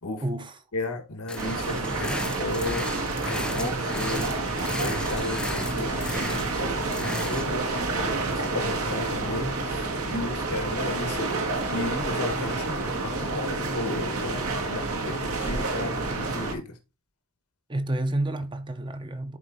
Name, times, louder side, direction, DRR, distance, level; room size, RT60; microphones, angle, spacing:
voice 1, 0.2-0.6 17.7-19.4, right 1 dB, 20° right, 0.7 m, -29 dB
voice 2, 0.7-4.3 4.7-7.7 8.1-11.3 11.7-16.8, left 2 dB, 85° left, 1.5 m, -34 dB
sound 1, 1.3-7.4, left 1 dB, 5° left, 0.3 m, -35 dB
sound 2, 1.4-16.5, right 3 dB, 80° right, 1.8 m, -29 dB
11.0 x 4.4 x 2.7 m
head